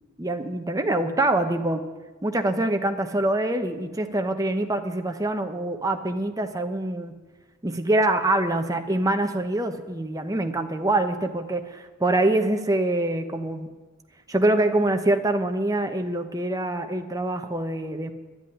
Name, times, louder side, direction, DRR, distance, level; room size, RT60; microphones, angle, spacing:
voice 1, 0.2-1.8 2.2-7.2 7.6-13.7 14.3-18.1, right 1 dB, 15° right, 6 dB, 0.9 m, -25 dB
11.0 x 8.3 x 9.9 m, 1.3 s
head